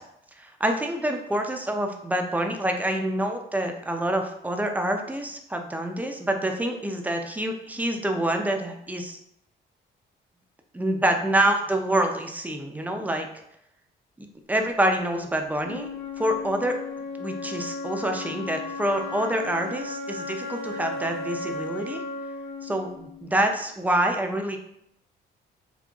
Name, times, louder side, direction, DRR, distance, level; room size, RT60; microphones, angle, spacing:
voice 1, 0.4-9.2 10.7-13.3 14.2-15.9 16.2-16.7 17.2-22.0 22.6-24.6, right 1 dB, 10° right, 4 dB, 0.4 m, -26 dB
Wind instrument woodwind instrument, 15.6-23.6, left 3 dB, 60° left, 0.9 m, -35 dB
3.8 x 2.7 x 2.3 m, 0.75 s
cardioid pair, 90°, 20 cm